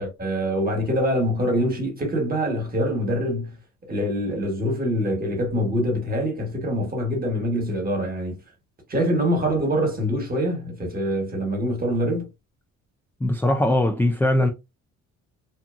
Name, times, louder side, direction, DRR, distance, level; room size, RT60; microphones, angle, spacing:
voice 1, 0.0-3.5 3.9-8.4 8.9-12.3, equal, 30° right, 1.3 m, -24 dB
voice 2, 13.2-14.5, left 1 dB, 5° left, 0.3 m, -20 dB
2.7 x 2.2 x 2.5 m
cardioid pair, 90°, 30 cm